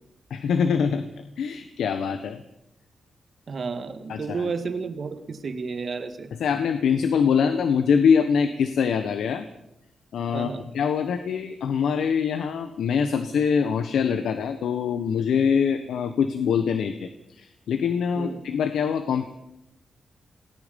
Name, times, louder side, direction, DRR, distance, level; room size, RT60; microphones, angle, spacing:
voice 1, 0.3-1.0 1.4-2.4 4.1-4.5 6.4-9.4 10.1-10.5 10.7-17.1 17.4-19.3, left 6 dB, 85° left, 9 dB, 1.4 m, -24 dB
voice 2, 3.5-6.3 10.3-10.7 18.2-18.4, right 5 dB, 40° right, 8 dB, 2.0 m, -32 dB
28.5 x 19.5 x 5.5 m, 0.84 s
wide cardioid pair, 155°, 0 cm